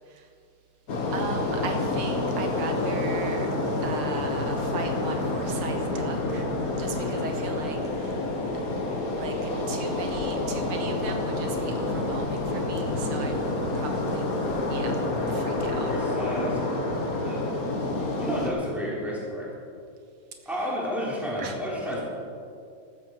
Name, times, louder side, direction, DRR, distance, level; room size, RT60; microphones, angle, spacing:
sound 1, 0.9-18.5, left 2 dB, 45° left, 1.8 m, -28 dB
voice 1, 1.1-3.5 3.8-6.5 6.7-8.2 9.1-13.4 13.7-14.2 14.7-15.0 15.3-15.9 21.4-21.6, right 4 dB, 90° right, 4 dB, 2.1 m, -37 dB
voice 2, 15.6-16.6 17.2-17.5 18.2-19.5 20.5-22.0, equal, ahead, -6 dB, 3.6 m, -31 dB
14.0 x 13.5 x 4.7 m, 2.4 s
omnidirectional pair, 2.3 m